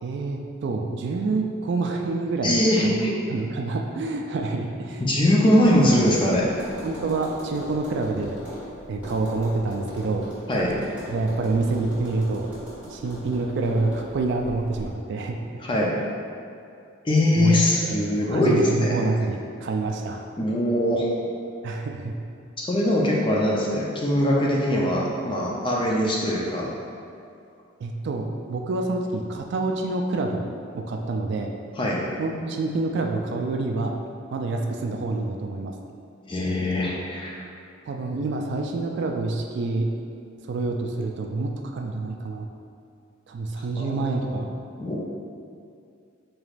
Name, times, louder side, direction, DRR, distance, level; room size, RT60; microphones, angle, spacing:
voice 1, 0.0-2.6 3.3-5.0 6.8-8.4 8.9-10.3 11.1-12.5 12.9-15.4 17.3-17.5 18.2-20.2 21.6-22.1 27.8-30.4 30.7-31.5 32.2-34.0 34.3-35.7 37.9-39.9 40.5-42.5 43.3-44.5, right 3 dB, 55° right, 2 dB, 0.3 m, -27 dB
voice 2, 2.4-3.1 5.0-6.5 10.5-10.7 15.6-15.9 17.0-19.0 20.4-21.1 22.6-26.7 31.8-32.0 36.3-37.4 43.8-44.5 44.8-45.0, left 1 dB, 25° left, -3 dB, 0.5 m, -22 dB
Tap, 5.6-14.9, right 1 dB, 5° right, 1.4 m, -40 dB
4.8 x 3.0 x 2.4 m, 2.4 s
head